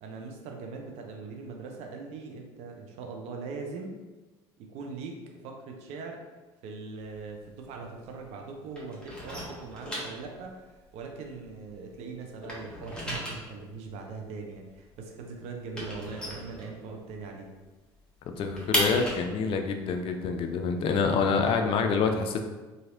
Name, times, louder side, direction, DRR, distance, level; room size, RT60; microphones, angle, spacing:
voice 1, 0.0-3.9 4.6-6.2 6.6-17.6, right 4 dB, 55° right, 2 dB, 0.5 m, -41 dB
sound 1, 7.0-8.4 8.7-11.9 12.2-17.2 17.6-17.7 18.0-21.7, equal, 5° left, 1.1 m, -36 dB
voice 2, 18.3-22.4, left 5 dB, 45° left, 5 dB, 0.4 m, -27 dB
3.0 x 2.7 x 2.5 m, 1.2 s
hypercardioid pair, 60°, 13 cm